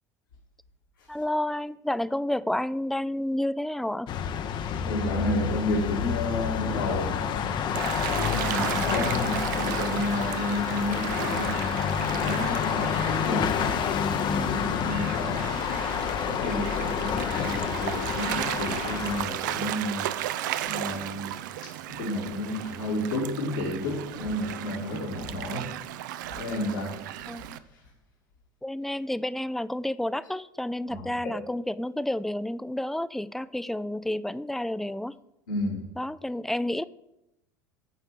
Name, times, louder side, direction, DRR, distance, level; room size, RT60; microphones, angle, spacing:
voice 1, 1.1-4.1 27.3-27.6 28.6-35.1 36.0-36.8, left 1 dB, 5° left, 16 dB, 0.3 m, -30 dB
sound 1, 4.1-19.2, left 8 dB, 45° left, 0.7 m, -29 dB
voice 2, 4.8-7.5 7.9-11.6 12.1-13.7 14.1-15.6 16.1-20.1 20.6-21.3 21.6-25.7 26.4-26.9 27.7-27.8 30.9-31.1 35.5-35.8, left 1 dB, 80° left, -4 dB, 2.3 m, -31 dB
Gull seagull / Waves surf, 7.7-27.6, right 12 dB, 75° right, 0.5 m, -35 dB
8.3 x 4.4 x 7.3 m, 0.86 s
hypercardioid pair, 75°, 10 cm